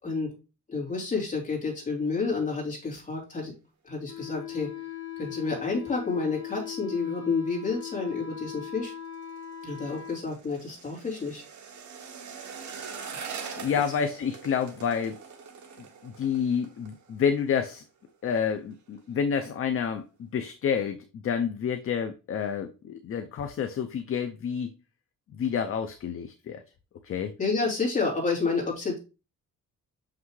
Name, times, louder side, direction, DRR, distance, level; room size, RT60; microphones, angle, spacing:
voice 1, 0.0-0.3 0.7-3.5 3.8-4.7 5.2-8.9 9.6-11.4 13.3-13.4 27.4-29.0, left 4 dB, 25° left, -2 dB, 3.3 m, -30 dB
Wind instrument woodwind instrument, 4.1-10.2, left 11 dB, 65° left, 1.3 m, -39 dB
sound 1, 8.8-17.8 18.1-18.4 18.7-19.2 19.6-19.7, right 6 dB, 70° right, 1.6 m, -43 dB
voice 2, 12.6-13.3 13.6-15.2 15.8-17.8 18.2-24.7 25.3-26.6 27.0-27.3, left 7 dB, 45° left, 7 dB, 0.6 m, -29 dB
6.2 x 5.9 x 3.2 m, 0.30 s
wide cardioid pair, 170°, 30 cm